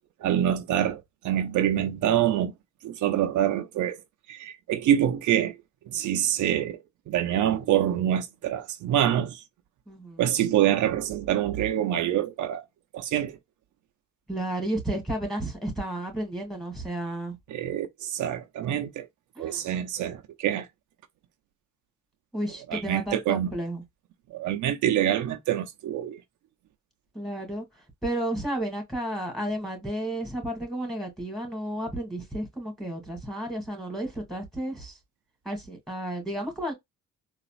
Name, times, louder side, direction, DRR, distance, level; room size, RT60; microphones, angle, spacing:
voice 1, 0.2-2.5 2.8-4.0 4.3-5.6 5.9-6.8 7.1-9.4 10.2-12.6 12.9-13.4 17.5-19.1 19.4-20.7 22.7-23.5 24.3-26.2, right 11 dB, 75° right, 0.7 m, -26 dB
voice 2, 9.9-10.3 14.3-17.4 19.3-19.6 22.3-23.8 27.1-35.0 35.4-36.7, right 1 dB, ahead, 2.2 m, -32 dB
4.0 x 2.4 x 2.5 m
cardioid pair, 90°, 30 cm